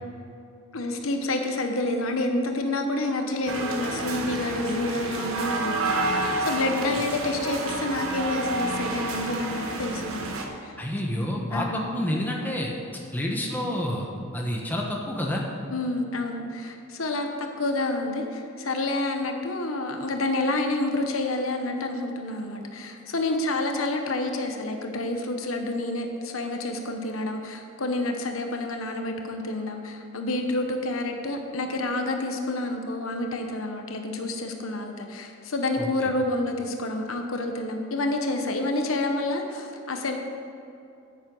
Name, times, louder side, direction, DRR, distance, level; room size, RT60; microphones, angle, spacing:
voice 1, 0.7-10.7 11.5-11.9 15.7-40.2, left 2 dB, 80° left, 4 dB, 1.1 m, -29 dB
sound 1, 3.5-10.4, right 2 dB, 80° right, 1.2 m, -29 dB
voice 2, 10.8-12.7 13.1-14.1 14.3-15.4 35.8-35.9, left 1 dB, 10° left, -1 dB, 1.2 m, -28 dB
9.7 x 9.2 x 5.5 m, 2.7 s
head